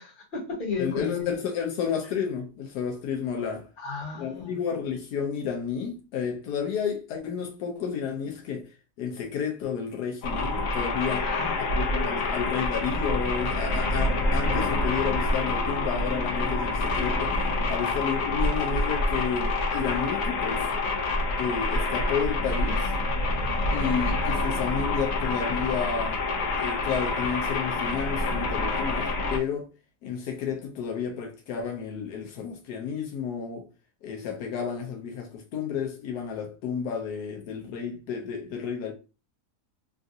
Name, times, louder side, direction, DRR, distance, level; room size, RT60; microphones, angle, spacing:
voice 1, 0.0-1.3 3.8-4.6 11.2-11.8 17.8-17.9, left 4 dB, 35° left, 1.4 m, -34 dB
voice 2, 0.8-3.7 4.1-11.3 11.6-17.4 17.7-20.7 21.4-22.9 23.7-26.2 26.6-29.7 30.0-33.7 34.0-38.9, left 7 dB, 80° left, 1.2 m, -31 dB
sound 1, 10.2-29.4, left 2 dB, 60° left, 1.1 m, -27 dB
3.5 x 2.4 x 2.6 m
omnidirectional pair, 1.7 m